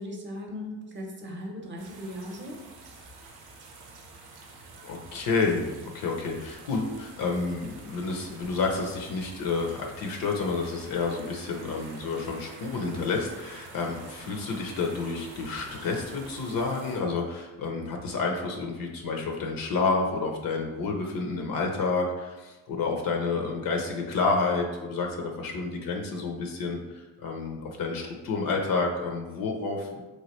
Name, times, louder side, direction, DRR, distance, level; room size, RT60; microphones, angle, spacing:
voice 1, 0.0-2.6, left 1 dB, 30° right, 1 dB, 0.7 m, -38 dB
sound 1, 1.8-17.0, right 3 dB, 75° right, 0.6 m, -47 dB
voice 2, 4.8-30.1, left 4 dB, 60° left, 2 dB, 0.6 m, -29 dB
3.0 x 2.3 x 3.0 m, 1.1 s
supercardioid pair, 70°, 38 cm